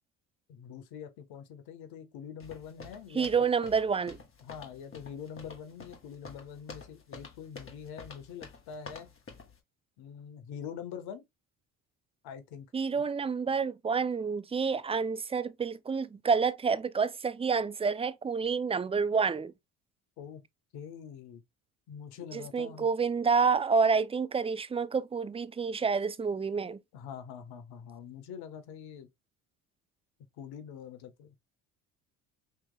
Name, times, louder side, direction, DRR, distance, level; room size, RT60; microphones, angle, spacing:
voice 1, 0.5-3.5 4.4-9.1 10.0-11.2 12.2-12.7 12.9-13.1 20.2-20.4 20.7-21.4 21.9-22.9 26.9-29.1 30.4-31.3, left 7 dB, 70° left, 1.3 m, -44 dB
sound 1, 2.4-9.6, left 4 dB, 35° left, 1.8 m, -48 dB
voice 2, 3.1-4.2 12.7-19.5 22.3-26.8, right 5 dB, 15° right, 0.4 m, -28 dB
6.1 x 3.1 x 2.2 m
supercardioid pair, 80°, 39 cm